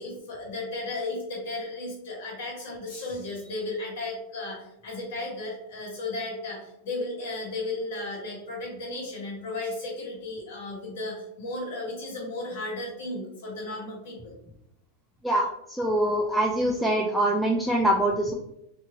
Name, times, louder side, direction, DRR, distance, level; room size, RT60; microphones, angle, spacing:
voice 1, 0.0-14.4, left 2 dB, 75° left, -3 dB, 1.4 m, -34 dB
voice 2, 15.8-18.3, right 1 dB, ahead, -1 dB, 0.3 m, -24 dB
2.7 x 2.6 x 2.8 m, 0.81 s
supercardioid pair, 140°, 0 cm